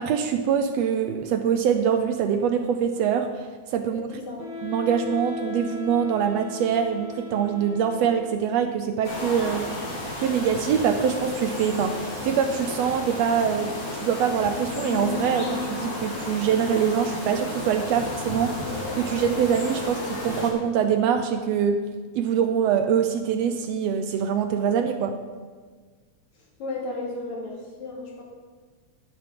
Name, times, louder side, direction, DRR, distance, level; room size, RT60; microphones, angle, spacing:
voice 1, 0.0-4.1 4.6-9.7 10.2-18.5 18.9-21.8 22.1-25.1, right 7 dB, 75° right, 7 dB, 1.7 m, -24 dB
voice 2, 3.8-4.5 26.4-28.2, left 2 dB, 70° left, -3 dB, 3.6 m, -35 dB
Wind instrument woodwind instrument, 4.4-8.5, left 2 dB, 55° right, 4.6 m, -37 dB
sound 1, 9.0-20.5, left 2 dB, 30° left, 2.4 m, -32 dB
12.5 x 10.5 x 3.8 m, 1.5 s
omnidirectional pair, 3.3 m